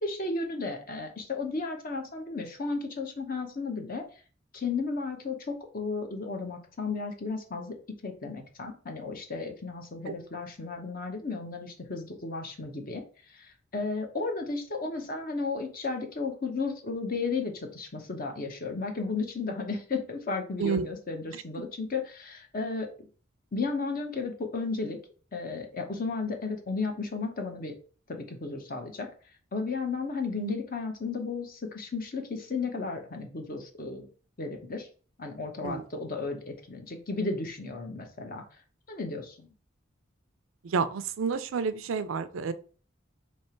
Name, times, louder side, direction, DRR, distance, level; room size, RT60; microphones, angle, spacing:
voice 1, 0.0-4.0 4.5-7.8 8.0-23.1 23.5-25.0 25.3-27.7 28.1-29.1 29.5-34.1 34.4-34.9 35.2-38.4 38.9-39.5, left 4 dB, 45° left, 4 dB, 0.8 m, -34 dB
voice 2, 40.6-42.5, right 5 dB, 85° right, 13 dB, 0.4 m, -30 dB
3.3 x 2.9 x 4.3 m, 0.40 s
head